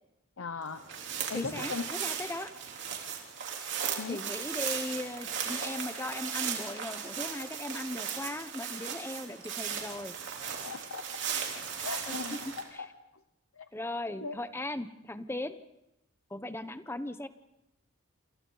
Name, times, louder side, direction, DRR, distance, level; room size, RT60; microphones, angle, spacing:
voice 1, 0.4-0.8 1.3-1.9 4.0-4.2 10.6-11.3 11.8-12.9 13.6-13.7 14.2-14.4, left 4 dB, 90° left, 9 dB, 0.9 m, -38 dB
sound 1, 0.7-12.6, right 7 dB, 60° right, 3.4 m, -37 dB
voice 2, 1.3-2.5 4.1-10.1 12.1-12.8 13.7-15.6 16.3-17.3, left 1 dB, 10° left, 11 dB, 0.9 m, -38 dB
28.0 x 27.5 x 4.0 m, 0.88 s
head